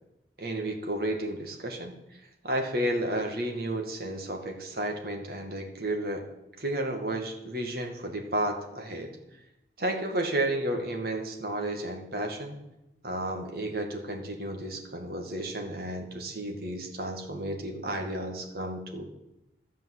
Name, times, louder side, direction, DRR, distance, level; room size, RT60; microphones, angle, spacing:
voice 1, 0.4-2.0 2.4-6.2 6.6-9.1 9.8-12.6 13.0-19.1, right 1 dB, 55° right, 3 dB, 2.1 m, -32 dB
13.0 x 7.4 x 7.9 m, 0.91 s
head